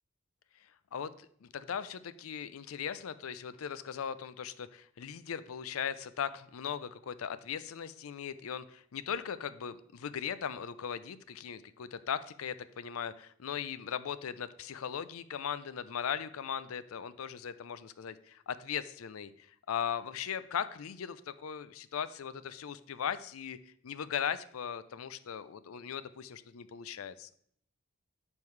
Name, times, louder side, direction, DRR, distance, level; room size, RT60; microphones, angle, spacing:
voice 1, 0.6-23.6 23.8-27.3, left 8 dB, 85° left, 15 dB, 0.4 m, -38 dB
9.2 x 5.4 x 3.2 m, 0.64 s
head